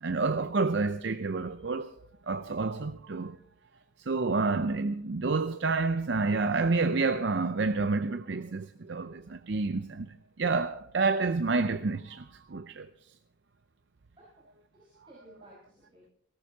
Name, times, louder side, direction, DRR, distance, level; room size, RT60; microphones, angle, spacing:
voice 1, 0.0-1.9 2.3-3.4 4.1-12.9, right 3 dB, 65° right, 0.6 m, -29 dB
voice 2, 14.7-16.1, right 1 dB, 25° right, 5.1 m, -56 dB
18.0 x 18.0 x 2.8 m
head